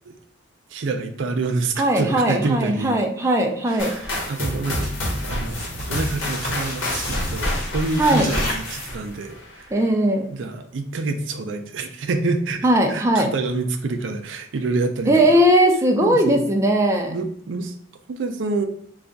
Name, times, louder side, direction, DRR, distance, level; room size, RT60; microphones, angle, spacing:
voice 1, 0.7-3.0 3.7-4.9 5.2-5.6 5.9-9.7 10.3-15.4 16.0-16.4 17.1-17.7 18.1-18.7, right 3 dB, 75° right, 6 dB, 0.4 m, -27 dB
voice 2, 1.8-4.0 8.0-8.3 9.7-10.3 12.6-13.3 15.1-17.1, right 1 dB, 15° right, 1 dB, 0.4 m, -18 dB
sound 1, 3.8-9.6, left 1 dB, 80° left, 1.0 m, -29 dB
sound 2, 4.8-9.3, left 1 dB, 40° left, 1.1 m, -32 dB
3.3 x 2.3 x 3.9 m, 0.62 s
head